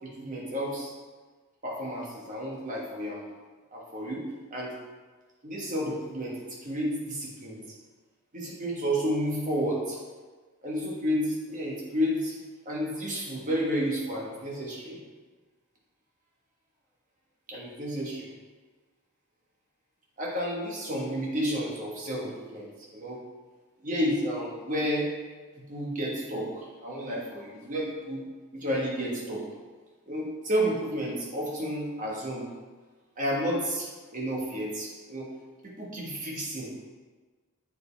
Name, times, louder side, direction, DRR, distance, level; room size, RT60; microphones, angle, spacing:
voice 1, 0.0-0.9 1.6-3.3 3.7-4.7 5.4-7.6 8.3-10.0 10.6-12.3 12.6-15.0 17.5-18.3 20.2-23.2 23.8-25.1 25.7-28.2 28.5-29.4 30.1-32.5 33.2-35.3 35.6-36.7, equal, 35° right, -3 dB, 1.4 m, -31 dB
7.8 x 4.8 x 3.4 m, 1.4 s
head